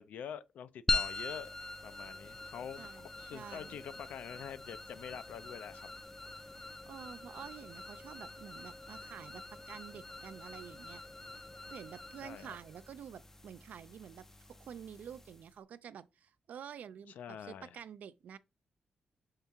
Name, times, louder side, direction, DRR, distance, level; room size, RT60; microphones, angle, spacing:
voice 1, 0.0-1.5 1.8-5.9 12.2-12.6 17.1-17.7, left 8 dB, 85° left, 0.4 m, -46 dB
sound 1, 0.9-15.6, left 3 dB, 15° left, 0.4 m, -43 dB
voice 2, 2.8-3.8 6.9-11.0 11.7-18.4, right 8 dB, 70° right, 0.3 m, -49 dB
5.5 x 2.8 x 3.5 m
cardioid pair, 120°, 3 cm